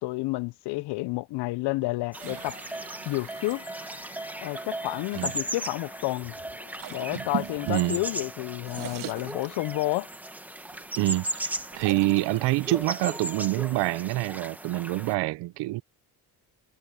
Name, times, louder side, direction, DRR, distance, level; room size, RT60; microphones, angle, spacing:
voice 1, 0.0-2.6 3.1-3.6 4.4-6.3 6.9-10.1, left 21 dB, 75° left, 0.5 m, -30 dB
sound 1, 2.1-8.3, left 10 dB, 50° left, 3.0 m, -52 dB
sound 2, 2.1-15.2, right 1 dB, 5° right, 0.9 m, -37 dB
sound 3, 2.2-5.8 6.6-8.3 8.5-10.0 10.6-14.0, right 11 dB, 55° right, 1.0 m, -42 dB
voice 2, 7.7-8.0 11.0-15.8, right 18 dB, 85° right, 0.6 m, -26 dB
cardioid pair, 175°, 41 cm